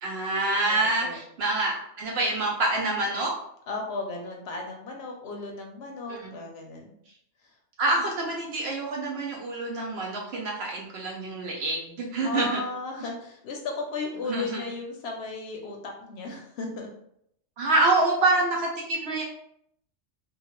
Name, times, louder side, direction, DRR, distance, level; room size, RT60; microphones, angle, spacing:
voice 1, 0.0-3.4 6.1-6.3 7.8-12.6 14.3-14.6 17.6-19.2, right 2 dB, 65° right, -1 dB, 0.8 m, -26 dB
voice 2, 0.7-1.2 3.7-7.0 7.4-7.5 12.2-16.9, left 3 dB, 65° left, 1 dB, 0.7 m, -35 dB
2.9 x 2.3 x 2.9 m, 0.72 s
omnidirectional pair, 1.3 m